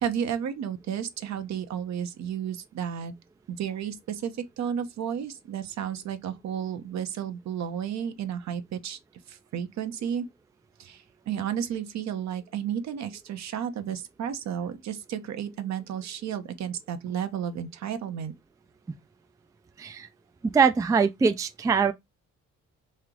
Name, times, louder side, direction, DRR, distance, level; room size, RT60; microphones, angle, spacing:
voice 1, 0.0-3.1 3.5-9.0 9.3-10.3 10.8-18.3, right 8 dB, 65° right, 0.8 m, -32 dB
voice 2, 20.5-21.9, right 5 dB, 10° right, 0.3 m, -22 dB
3.2 x 2.8 x 3.7 m
cardioid pair, 90°, 30 cm